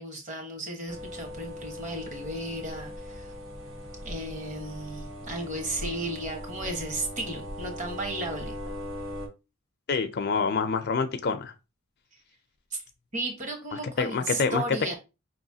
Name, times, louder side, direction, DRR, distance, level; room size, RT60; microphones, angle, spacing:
voice 1, 0.0-3.3 4.0-8.5 12.7-12.8 13.1-14.9, right 1 dB, 40° right, 1.3 m, -34 dB
sound 1, 0.9-9.3, left 1 dB, 80° right, 1.8 m, -39 dB
voice 2, 9.9-11.5 13.7-14.6, left 5 dB, 50° left, 0.5 m, -27 dB
5.2 x 3.1 x 2.7 m
head